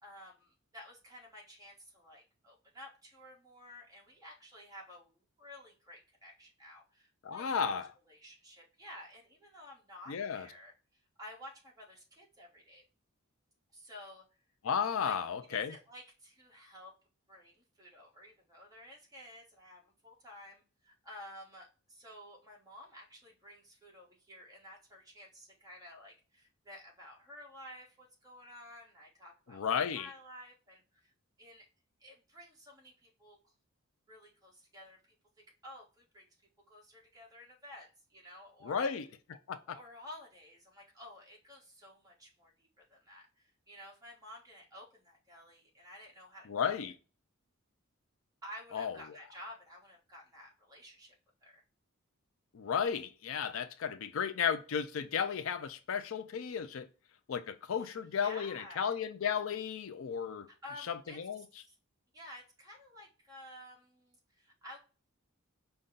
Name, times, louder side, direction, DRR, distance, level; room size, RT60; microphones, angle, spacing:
voice 1, 0.0-7.8 8.0-10.7 11.2-12.8 13.7-14.2 15.0-16.9 17.3-31.1 31.4-31.7 32.0-33.4 34.1-35.0 35.4-36.2 36.7-38.9 39.7-46.8 48.4-51.1 51.4-51.6 57.8-58.9 60.5-61.7 62.1-64.8, left 1 dB, 15° right, 1.4 m, -52 dB
voice 2, 7.2-7.9 10.1-10.5 14.6-15.7 29.5-30.1 38.6-39.1 39.5-39.6 46.5-46.9 48.7-49.0 52.5-56.9 57.3-60.5 60.9-61.4, left 7 dB, 65° left, 0.4 m, -34 dB
5.2 x 2.3 x 3.7 m
head